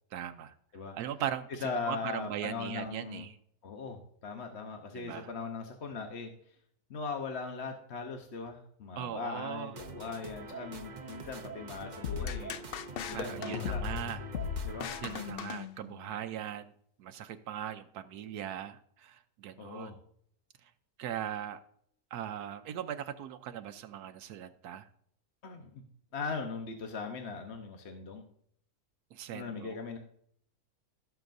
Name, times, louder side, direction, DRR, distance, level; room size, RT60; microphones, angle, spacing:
voice 1, 0.1-0.5 0.9-1.5 1.8-3.3 4.9-5.3 9.0-9.7 13.1-14.3 15.0-16.7 17.0-20.0 20.6-20.7 21.0-21.6 22.1-24.9 29.1-29.8, right 10 dB, 85° right, 9 dB, 1.2 m, -39 dB
voice 2, 1.5-3.3 3.6-6.6 6.9-12.6 13.1-13.9 14.6-14.9 19.6-20.0 25.4-25.8 26.1-28.3 29.3-30.0, left 4 dB, 50° left, 4 dB, 1.1 m, -39 dB
sound 1, 9.7-15.3, right 3 dB, 40° right, 0.7 m, -45 dB
sound 2, 12.0-16.2, left 8 dB, 85° left, 0.5 m, -37 dB
17.0 x 6.9 x 2.6 m, 0.66 s
omnidirectional pair, 1.6 m